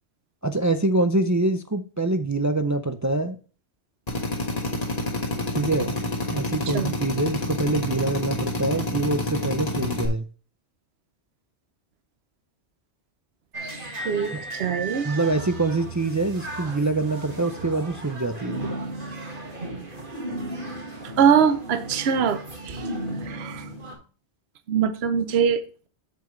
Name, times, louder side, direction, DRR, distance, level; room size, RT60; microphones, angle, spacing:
voice 1, 0.4-3.4 5.5-6.0 6.3-10.3 14.3-14.4 15.0-18.7, right 2 dB, 30° right, 8 dB, 0.3 m, -25 dB
Drill, 4.1-10.1, left 2 dB, 35° left, 1.5 m, -28 dB
sound 1, 13.5-23.9, right 1 dB, 50° right, 2.1 m, -35 dB
voice 2, 14.6-15.1 21.2-22.8 23.3-23.7 24.7-25.6, right 7 dB, 70° right, 10 dB, 1.0 m, -22 dB
7.9 x 7.3 x 3.1 m, 0.37 s
omnidirectional pair, 1.1 m